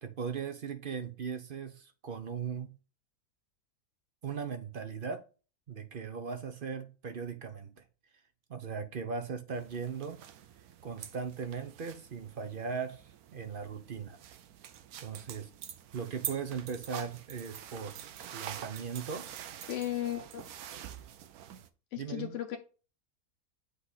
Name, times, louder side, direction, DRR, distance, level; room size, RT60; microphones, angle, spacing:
voice 1, 0.0-2.7 4.2-5.2 5.7-7.8 8.5-10.2 10.8-14.2 15.0-15.5 15.9-18.0 18.2-19.4 22.0-22.3, right 6 dB, 45° right, 0.8 m, -38 dB
sound 1, 9.5-21.7, right 10 dB, 80° right, 1.1 m, -46 dB
voice 2, 19.7-20.4 21.9-22.6, left 12 dB, 60° left, 0.9 m, -35 dB
8.1 x 3.2 x 4.0 m
omnidirectional pair, 1.6 m